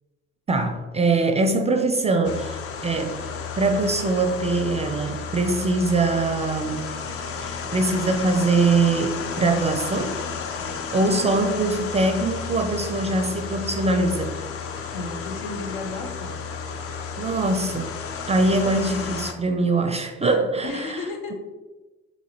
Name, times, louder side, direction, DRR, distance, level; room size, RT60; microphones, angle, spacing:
voice 1, 0.5-3.3 3.6-6.9 7.4-10.2 10.9-14.4 17.2-18.0 18.3-21.0, right 3 dB, 20° right, 0.4 m, -23 dB
sound 1, 2.2-19.3, left 5 dB, 45° left, 0.6 m, -32 dB
voice 2, 14.9-16.4 20.6-21.3, left 3 dB, 75° left, 0.8 m, -33 dB
3.8 x 3.0 x 4.2 m
hypercardioid pair, 55°, 33 cm